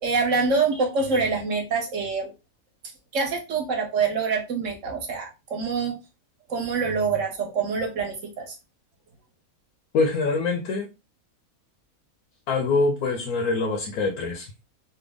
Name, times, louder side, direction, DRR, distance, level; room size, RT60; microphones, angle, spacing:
voice 1, 0.0-2.3 3.1-6.0 6.5-8.5, right 4 dB, 60° right, 1.2 m, -25 dB
voice 2, 9.9-10.9 12.5-14.5, left 3 dB, 85° left, 1.2 m, -24 dB
3.4 x 2.1 x 3.3 m
omnidirectional pair, 1.5 m